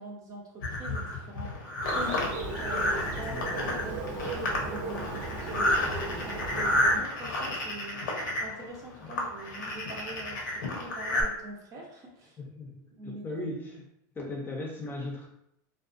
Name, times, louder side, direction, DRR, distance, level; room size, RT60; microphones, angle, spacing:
voice 1, 0.0-1.5 1.9-2.3 2.6-8.0 8.4-12.4 12.9-13.4, right 1 dB, 35° right, -1 dB, 0.6 m, -43 dB
sound 1, 0.6-11.2, left 1 dB, 85° left, 0.8 m, -31 dB
Bird, 1.8-7.0, right 2 dB, 70° right, 0.7 m, -36 dB
voice 2, 12.4-13.9 14.2-15.3, left 2 dB, 20° left, -1 dB, 0.6 m, -38 dB
2.4 x 2.3 x 2.5 m, 0.75 s
supercardioid pair, 115°, 10 cm